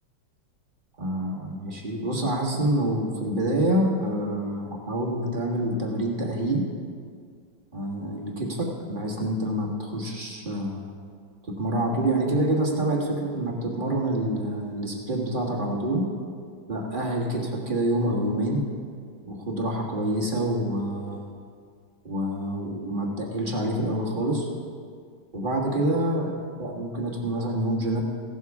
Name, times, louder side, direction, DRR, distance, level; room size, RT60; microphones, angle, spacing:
voice 1, 1.0-6.6 7.7-10.9 11.6-16.0 16.7-18.6 19.2-21.3 22.0-24.5 25.3-26.3 26.6-28.0, right 1 dB, 25° right, -2 dB, 1.6 m, -27 dB
16.5 x 12.5 x 3.6 m, 2.1 s
omnidirectional pair, 2.2 m